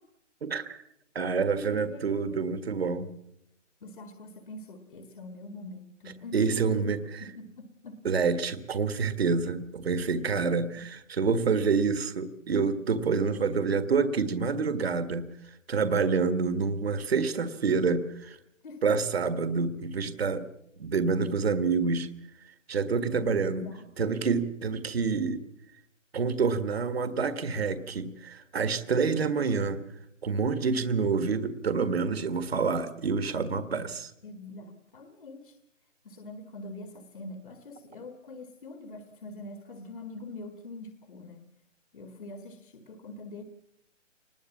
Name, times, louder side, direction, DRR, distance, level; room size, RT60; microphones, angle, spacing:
voice 1, 0.4-0.8 1.2-3.1 6.3-7.2 8.0-18.4 18.8-20.4 20.8-22.1 22.7-23.7 24.0-25.4 26.1-29.8 30.2-34.1, right 5 dB, 55° right, 10 dB, 1.8 m, -27 dB
voice 2, 1.4-2.4 3.8-8.0 10.8-10.9 18.6-18.9 23.2-23.9 34.2-35.6 36.0-41.5 41.9-43.4, left 2 dB, 45° left, 6 dB, 1.9 m, -44 dB
23.5 x 20.5 x 7.3 m, 0.79 s
hypercardioid pair, 175°, 38 cm